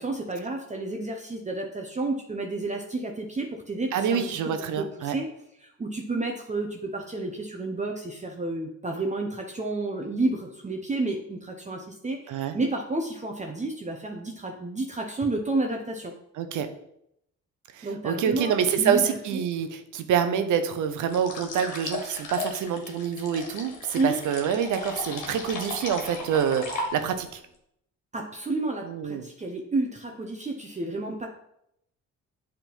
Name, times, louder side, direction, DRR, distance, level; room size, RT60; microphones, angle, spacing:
voice 1, 0.0-5.3 5.6-16.1 17.8-18.5 18.8-19.4 23.9-24.2 28.1-31.3, right 2 dB, 25° right, 2 dB, 0.9 m, -31 dB
voice 2, 3.9-5.1 12.3-12.6 16.4-16.7 17.7-27.4 28.8-29.2, right 8 dB, 80° right, 9 dB, 0.9 m, -26 dB
sound 1, 21.1-27.3, left 3 dB, 80° left, 1.5 m, -36 dB
7.3 x 3.8 x 5.5 m, 0.76 s
cardioid pair, 90°, 30 cm